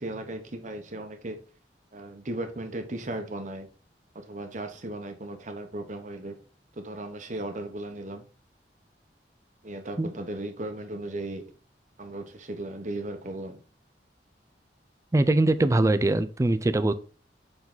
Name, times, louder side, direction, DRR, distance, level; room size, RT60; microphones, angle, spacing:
voice 1, 0.0-1.4 1.9-3.7 4.1-6.4 6.8-8.3 9.6-11.4 12.0-13.6, right 1 dB, 45° right, 1.0 m, -36 dB
voice 2, 15.1-16.9, right 2 dB, 20° right, 0.3 m, -22 dB
7.1 x 3.9 x 3.8 m
head